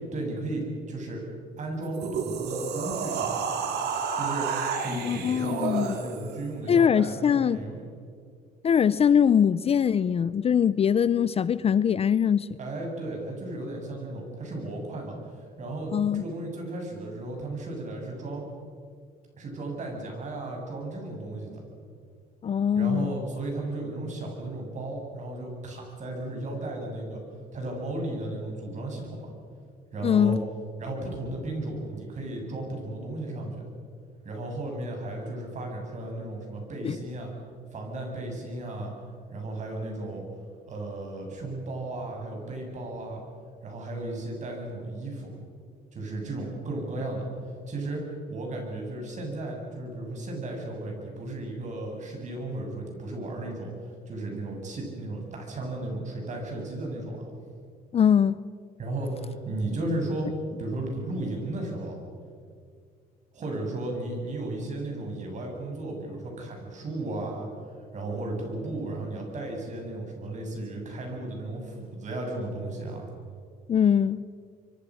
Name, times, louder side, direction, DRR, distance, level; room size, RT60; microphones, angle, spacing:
voice 1, 0.1-1.2 1.6-3.4 4.1-4.5 4.8-7.8 12.6-18.4 19.4-21.6 22.7-27.2 27.5-29.3 29.9-30.4 30.8-33.6 34.2-37.3 37.7-38.9 39.3-40.2 40.7-43.2 43.6-45.3 45.9-47.2 47.7-57.3 58.8-60.3 60.6-62.0 63.3-67.5 67.9-73.1, right 2 dB, 45° right, 8.0 m, -34 dB
Zombie gasps, 1.8-6.4, right 6 dB, 75° right, 3.2 m, -31 dB
voice 2, 4.9-5.9 6.7-7.6 8.6-12.5 15.9-16.2 22.4-23.1 30.0-30.4 36.8-37.0 57.9-58.4 73.7-74.2, left 8 dB, 35° left, 0.6 m, -22 dB
26.5 x 23.5 x 6.4 m
cardioid pair, 110°, 17 cm